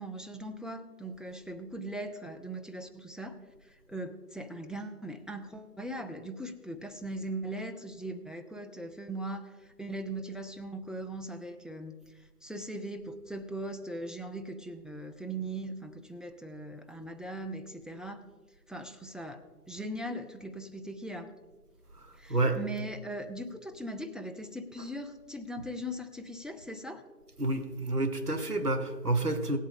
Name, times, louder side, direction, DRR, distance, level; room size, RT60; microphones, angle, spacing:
voice 1, 0.0-3.4 3.7-11.9 12.4-18.2 18.7-19.4 19.7-21.3 22.2-27.0, right 1 dB, ahead, 4 dB, 0.5 m, -39 dB
voice 2, 22.3-22.6 24.8-24.9 27.4-29.6, right 2 dB, 70° right, 7 dB, 1.6 m, -29 dB
17.5 x 8.3 x 3.7 m, 1.3 s
figure-of-eight pair, 170°, 47 cm